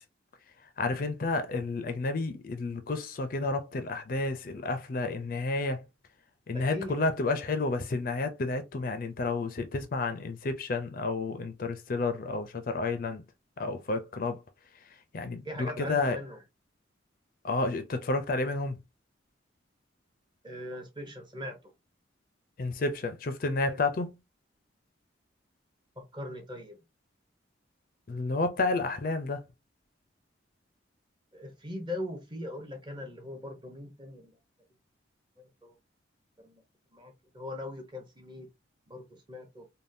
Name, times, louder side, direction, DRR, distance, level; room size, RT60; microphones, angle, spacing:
voice 1, 0.8-5.8 6.5-13.2 13.6-14.4 15.1-16.2 17.4-18.8 22.6-24.1 28.1-29.4, left 3 dB, 45° left, 0.4 m, -30 dB
voice 2, 6.5-7.0 15.4-16.4 20.4-21.6 23.7-23.8 26.0-26.8 31.3-34.3 35.6-35.7 36.4-36.6 36.9-38.5 38.9-39.6, left 1 dB, 25° right, 0.7 m, -40 dB
3.4 x 2.2 x 2.6 m
head